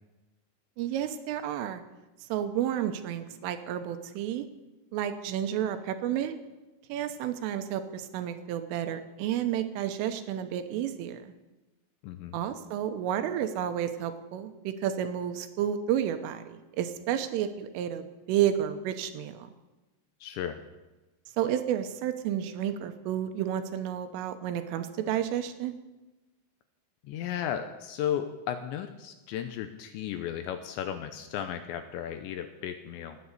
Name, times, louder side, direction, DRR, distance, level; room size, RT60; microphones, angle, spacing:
voice 1, 0.8-1.8 2.3-4.5 4.9-6.4 6.9-11.3 12.3-19.5 21.4-25.8, right 10 dB, 80° right, 8 dB, 3.5 m, -31 dB
voice 2, 12.0-12.4 20.2-20.6 27.0-33.2, left 9 dB, 80° left, 8 dB, 2.7 m, -35 dB
19.0 x 8.5 x 8.2 m, 1.1 s
omnidirectional pair, 5.9 m